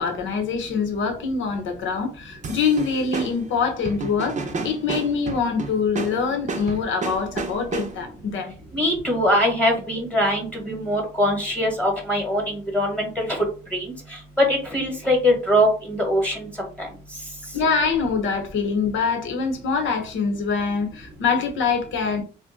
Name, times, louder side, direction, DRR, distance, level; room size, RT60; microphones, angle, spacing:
voice 1, 0.0-4.4 4.6-8.5 17.5-22.2, left 5 dB, 75° left, 0.9 m, -24 dB
sound 1, 2.4-8.2, right 3 dB, 35° right, 0.6 m, -32 dB
voice 2, 8.7-13.4 13.7-13.8 14.4-16.5 16.8-16.9, equal, 5° left, 1.1 m, -22 dB
2.6 x 2.2 x 3.7 m
cardioid pair, 90°, 20 cm